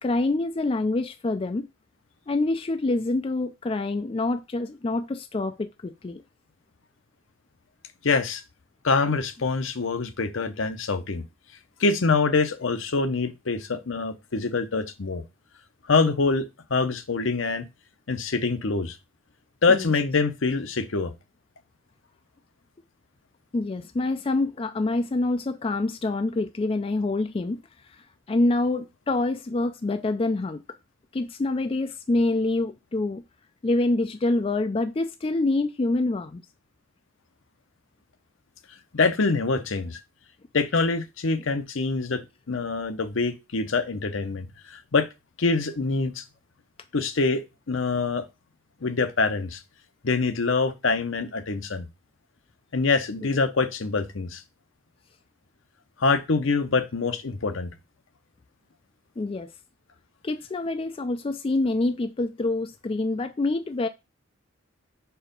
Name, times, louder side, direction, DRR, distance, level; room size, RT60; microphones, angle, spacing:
voice 1, 0.0-1.7 2.3-6.2 19.7-19.9 23.5-27.6 28.3-30.6 31.1-33.2 33.6-36.4 59.2-59.5 60.2-63.9, left 2 dB, 25° left, 0.4 m, -26 dB
voice 2, 8.0-8.4 8.8-11.2 11.8-15.2 15.9-16.4 16.7-17.6 18.1-19.0 19.6-21.1 38.9-40.0 40.5-42.2 42.5-45.1 45.4-46.2 46.9-48.2 48.8-49.6 50.0-51.9 52.7-54.4 56.0-57.7, left 4 dB, 70° left, 0.8 m, -25 dB
4.9 x 4.7 x 5.1 m
head